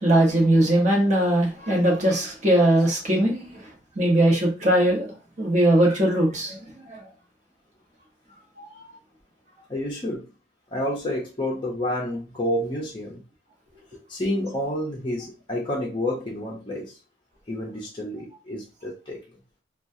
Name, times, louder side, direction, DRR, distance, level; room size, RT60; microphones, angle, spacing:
voice 1, 0.0-3.6 4.0-5.1 5.4-7.0 8.6-8.7, right 1 dB, 40° right, -1 dB, 1.0 m, -20 dB
voice 2, 9.7-10.3 10.7-13.2 14.1-16.9 17.5-19.2, left 1 dB, 25° left, -3 dB, 0.6 m, -29 dB
2.9 x 2.3 x 2.6 m, 0.33 s
head